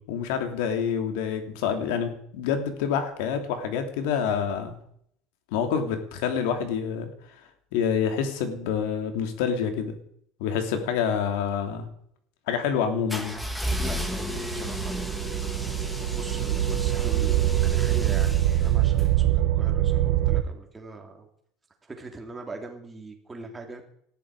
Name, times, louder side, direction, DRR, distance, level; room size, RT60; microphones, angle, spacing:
voice 1, 0.1-4.8 5.5-7.1 7.7-10.0 10.4-11.9 12.5-13.4, left 7 dB, 85° left, 6 dB, 3.0 m, -27 dB
sound 1, 13.1-19.1, equal, 5° left, 2.1 m, -33 dB
voice 2, 13.8-15.8 16.1-21.3 21.8-23.9, right 3 dB, 15° right, 3 dB, 3.0 m, -41 dB
sound 2, 14.2-20.4, right 13 dB, 75° right, 1.3 m, -24 dB
19.0 x 13.5 x 5.0 m, 0.67 s
cardioid pair, 155°, 0 cm